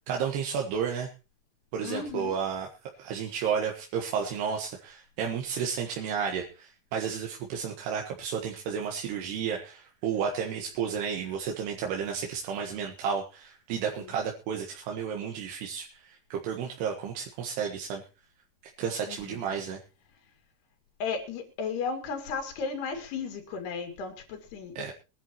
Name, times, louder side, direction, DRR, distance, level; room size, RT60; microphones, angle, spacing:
voice 1, 0.1-1.1 1.7-2.7 3.0-18.0 18.8-19.8 24.8-24.9, right 7 dB, 85° right, 1 dB, 3.6 m, -32 dB
voice 2, 1.8-2.3 21.0-24.9, left 5 dB, 80° left, 5 dB, 4.4 m, -34 dB
23.0 x 11.0 x 3.0 m, 0.31 s
omnidirectional pair, 4.6 m